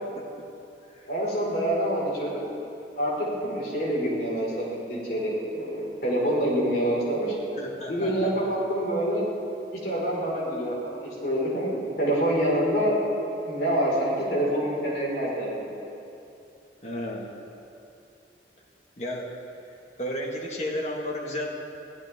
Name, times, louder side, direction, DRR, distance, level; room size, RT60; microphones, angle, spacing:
voice 1, 1.1-2.4 3.0-7.3 7.9-9.3 9.8-13.0 13.5-15.6, right 1 dB, 60° left, -5 dB, 5.1 m, -26 dB
voice 2, 7.6-8.3 16.8-17.3 19.0-19.3 20.0-21.5, left 1 dB, 40° left, 0 dB, 1.8 m, -32 dB
24.0 x 16.0 x 3.7 m, 2.7 s
head